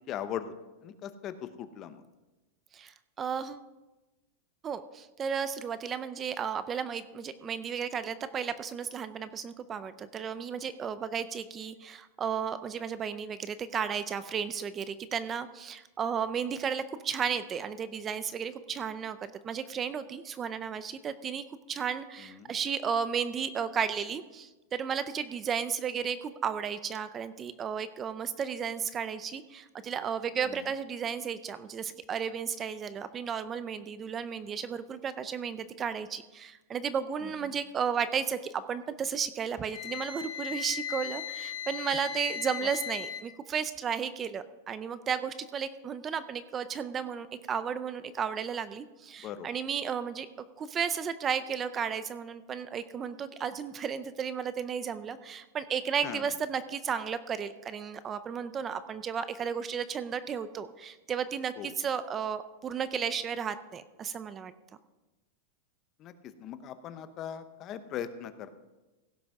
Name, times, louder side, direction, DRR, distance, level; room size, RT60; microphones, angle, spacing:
voice 1, 0.1-0.5 0.8-2.0 22.2-22.5 30.4-30.6 37.2-37.6 42.6-42.7 49.2-49.5 56.0-56.3 61.6-61.7 66.0-66.1 66.4-68.5, left 9 dB, 30° left, 11 dB, 0.8 m, -39 dB
voice 2, 2.7-3.6 4.6-19.2 19.4-50.3 50.6-64.5, right 7 dB, 20° right, 13 dB, 0.5 m, -34 dB
Wind instrument woodwind instrument, 39.7-43.2, left 8 dB, 50° left, 1.4 m, -37 dB
16.5 x 6.0 x 5.3 m, 1.1 s
supercardioid pair, 150°, 0 cm